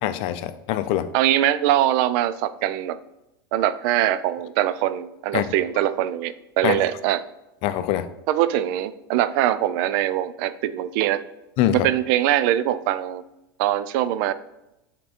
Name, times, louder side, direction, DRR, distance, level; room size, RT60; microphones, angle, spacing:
voice 1, 0.0-1.1 5.3-5.4 6.6-6.8 7.6-8.1 11.6-11.9, left 12 dB, 50° left, 12 dB, 0.5 m, -23 dB
voice 2, 1.1-3.0 3.5-7.2 8.3-11.2 11.7-13.2 13.6-14.3, right 12 dB, 60° right, 14 dB, 0.5 m, -22 dB
7.3 x 3.8 x 4.2 m, 0.91 s
supercardioid pair, 115°, 12 cm